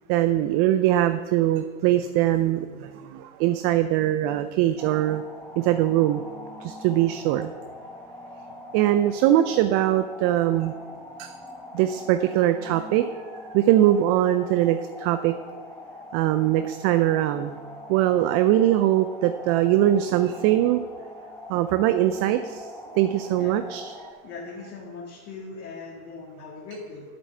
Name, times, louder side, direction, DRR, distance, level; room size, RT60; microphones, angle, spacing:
voice 1, 0.1-5.2 5.6-6.2 6.6-7.5 8.7-10.7 11.2-11.3 11.7-13.1 13.5-15.3 16.1-17.6 17.9-20.9 21.5-22.7 22.9-23.9, right 13 dB, 35° right, 10 dB, 0.5 m, -22 dB
sound 1, 4.8-24.1, left 1 dB, 5° left, 1.4 m, -42 dB
voice 2, 24.2-27.0, left 4 dB, 30° left, -3 dB, 2.0 m, -40 dB
8.1 x 7.9 x 6.6 m, 1.5 s
hypercardioid pair, 105°, 44 cm